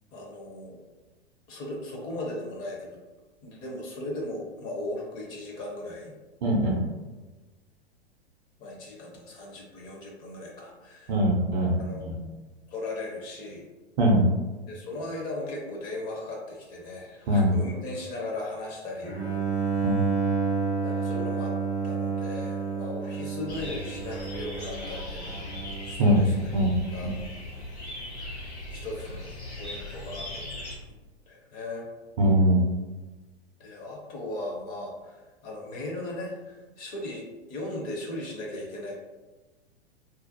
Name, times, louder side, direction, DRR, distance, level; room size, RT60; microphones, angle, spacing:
voice 1, 0.1-0.8 1.5-3.0 3.4-6.2 8.6-11.1 11.8-12.1 12.7-13.7 14.7-19.5 20.8-21.5 21.8-25.5 25.8-26.5 26.9-27.1 28.7-30.5 31.3-31.9 33.6-38.9, left 2 dB, 25° left, -2 dB, 0.5 m, -37 dB
voice 2, 6.4-6.8 11.1-12.2 14.0-14.2 17.3-17.5 19.8-20.0 26.0-26.2 26.5-26.7 27.0-27.1 32.2-32.6, right 1 dB, 40° right, 0 dB, 0.5 m, -22 dB
Bowed string instrument, 19.0-26.0, right 5 dB, 75° left, 1.3 m, -30 dB
sound 1, 23.5-30.8, left 1 dB, 90° left, 0.8 m, -39 dB
2.4 x 2.1 x 2.6 m, 1.2 s
hypercardioid pair, 110°, 33 cm